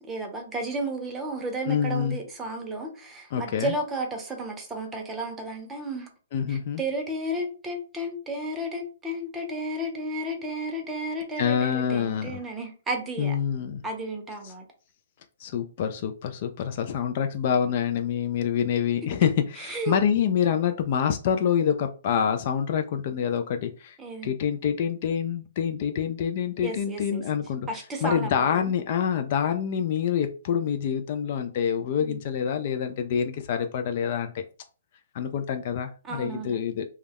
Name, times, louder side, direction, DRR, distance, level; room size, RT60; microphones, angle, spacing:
voice 1, 0.0-6.1 6.5-13.4 13.8-14.6 19.6-20.0 24.0-24.3 26.6-27.2 27.7-28.7 32.0-32.2 36.0-36.6, right 1 dB, 10° right, 2 dB, 0.7 m, -33 dB
voice 2, 1.7-2.2 3.3-3.7 6.3-6.8 11.4-12.4 13.2-13.8 15.4-24.0 24.2-34.4 35.1-36.9, left 8 dB, 50° left, 7 dB, 0.3 m, -26 dB
2.3 x 2.1 x 3.3 m, 0.37 s
hypercardioid pair, 135°, 0 cm